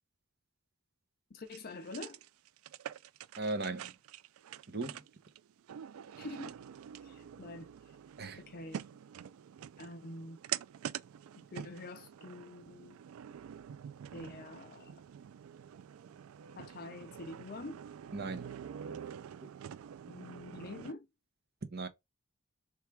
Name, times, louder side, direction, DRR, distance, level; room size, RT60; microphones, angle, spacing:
voice 1, 1.3-2.2 6.2-6.5 7.0-7.7 8.4-8.8 9.8-10.4 11.4-12.9 14.1-14.9 16.6-17.8 20.0-21.1, left 2 dB, 45° left, 0.5 m, -46 dB
sound 1, 1.5-20.9, right 9 dB, 80° right, 0.3 m, -46 dB
voice 2, 3.4-3.9 4.7-5.0 8.2-8.4 18.1-18.5 18.9-19.0 21.7-21.9, right 3 dB, 45° right, 0.8 m, -37 dB
3.5 x 3.2 x 4.5 m
head